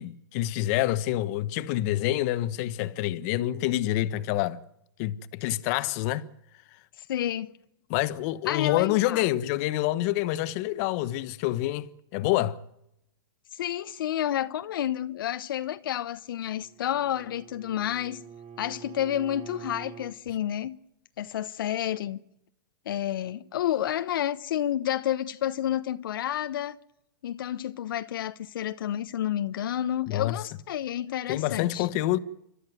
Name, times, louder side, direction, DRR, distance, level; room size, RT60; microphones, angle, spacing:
voice 1, 0.0-4.6 5.0-6.3 7.9-12.6 30.1-30.4 31.3-32.2, left 15 dB, 45° left, 1.2 m, -27 dB
voice 2, 7.0-7.6 8.5-9.3 13.5-18.2 18.6-20.8 21.2-22.2 22.9-26.8 27.2-31.9, left 11 dB, 70° left, 1.0 m, -30 dB
Bowed string instrument, 16.4-20.2, right 7 dB, 35° right, 2.8 m, -46 dB
30.0 x 13.0 x 9.4 m
hypercardioid pair, 140°, 12 cm